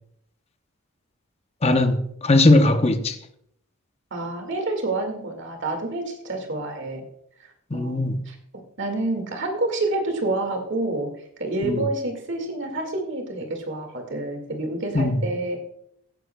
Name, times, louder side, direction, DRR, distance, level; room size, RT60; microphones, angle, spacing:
voice 1, 1.6-3.2 7.7-8.1 11.6-11.9 14.9-15.2, left 2 dB, 30° left, 0.8 m, -19 dB
voice 2, 4.1-7.0 7.4-8.4 8.8-11.1 11.4-15.6, right 2 dB, 55° right, 2.0 m, -28 dB
16.5 x 9.7 x 2.3 m
head